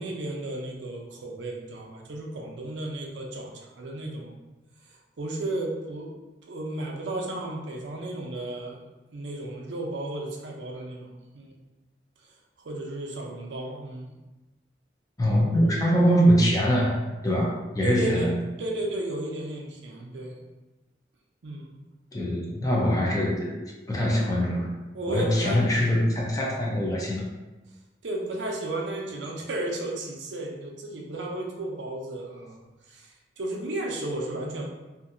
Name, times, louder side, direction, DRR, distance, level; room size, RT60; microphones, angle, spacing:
voice 1, 0.0-4.3 4.9-6.1 6.5-8.8 9.1-11.5 12.6-14.1 17.8-18.3 18.5-20.4 21.4-21.7 24.9-25.6 28.0-32.6 32.8-34.7, right 1 dB, 90° right, 0 dB, 0.6 m, -33 dB
voice 2, 15.2-16.9 17.2-18.4 22.1-23.6 23.9-24.7 25.1-27.3, equal, 20° left, -3 dB, 0.5 m, -23 dB
2.8 x 2.5 x 2.5 m, 1.1 s
head